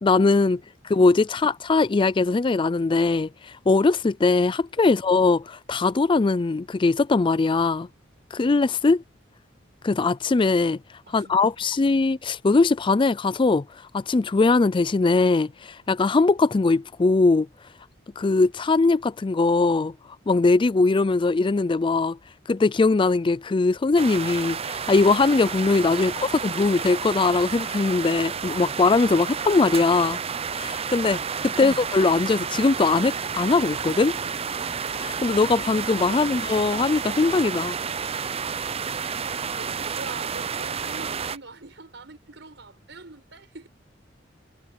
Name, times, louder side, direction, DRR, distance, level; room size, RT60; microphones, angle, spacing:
voice 1, 0.0-0.6 0.8-7.9 8.3-9.0 9.8-10.8 11.1-13.7 13.9-17.5 18.2-19.9 20.3-22.2 22.5-30.2 30.5-34.2 34.9-37.8, left 3 dB, 25° left, 0.4 m, -21 dB
sound 1, 24.0-41.4, right 6 dB, 30° right, 0.6 m, -31 dB
voice 2, 39.6-43.7, right 3 dB, 70° right, 6.3 m, -44 dB
head